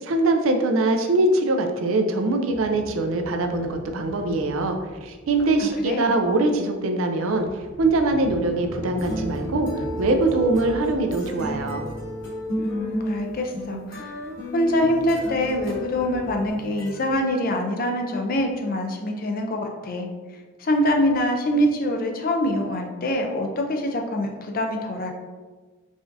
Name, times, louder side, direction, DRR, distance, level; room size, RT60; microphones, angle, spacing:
voice 1, 0.0-7.5 7.8-11.9, right 2 dB, 80° right, 5 dB, 0.4 m, -23 dB
Sliding door, 2.5-6.3 6.9-16.5, left 1 dB, 15° left, 0.8 m, -41 dB
sound 1, 9.0-17.1, equal, 65° left, 1.1 m, -33 dB
voice 2, 12.6-14.1 14.5-20.1 20.6-25.1, left 1 dB, 45° left, 3 dB, 0.5 m, -24 dB
4.8 x 2.6 x 2.6 m, 1.3 s
head